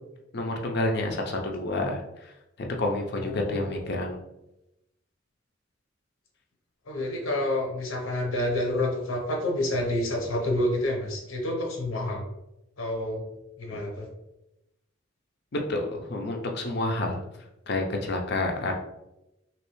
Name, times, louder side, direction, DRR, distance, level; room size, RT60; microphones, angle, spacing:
voice 1, 0.3-2.3 2.6-4.2 15.5-17.2 17.7-18.7, left 2 dB, 55° left, 2 dB, 0.5 m, -29 dB
voice 2, 3.1-3.9 6.9-12.2 12.8-13.2 13.6-14.1, left 1 dB, 85° left, 0 dB, 0.9 m, -28 dB
3.1 x 3.0 x 3.1 m, 0.90 s
head